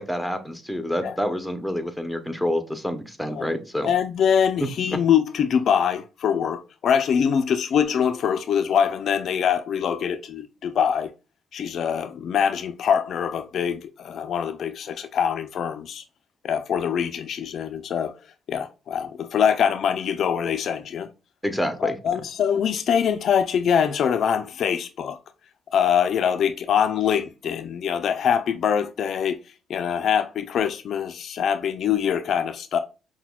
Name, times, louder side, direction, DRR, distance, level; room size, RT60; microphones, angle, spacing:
voice 1, 0.0-3.9 4.6-5.0 21.4-22.0, equal, ahead, 0.7 m, -27 dB
voice 2, 3.8-11.1 11.5-16.0 16.4-18.1 18.5-21.1 21.8-25.2 25.7-29.4 29.7-32.8, left 8 dB, 65° left, 0.3 m, -23 dB
5.7 x 2.1 x 2.2 m
cardioid pair, 90°, 0 cm